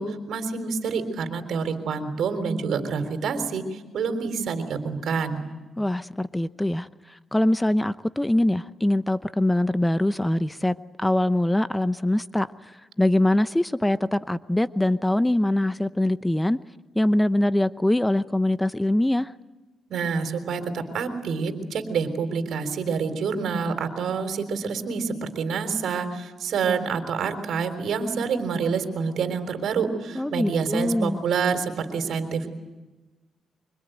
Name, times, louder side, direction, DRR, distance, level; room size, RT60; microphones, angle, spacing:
voice 1, 0.0-5.4 19.9-32.5, right 5 dB, 80° right, 3.7 m, -27 dB
voice 2, 5.8-16.6 16.9-19.3 30.1-31.2, left 1 dB, 10° left, 0.9 m, -23 dB
26.0 x 25.0 x 9.2 m
cardioid pair, 75°, 0 cm